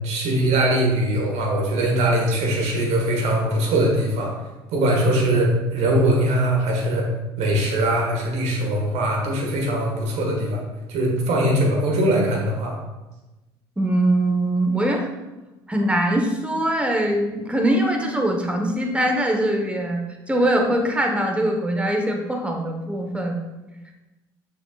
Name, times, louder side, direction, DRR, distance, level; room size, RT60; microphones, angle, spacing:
voice 1, 0.0-4.3 4.7-7.1 7.4-10.6 10.9-12.8, right 1 dB, 60° right, -1 dB, 1.8 m, -21 dB
voice 2, 13.8-15.1 15.7-23.4, right 1 dB, 10° right, 1 dB, 1.3 m, -22 dB
7.1 x 6.0 x 2.5 m, 1.1 s
hypercardioid pair, 60°, 13 cm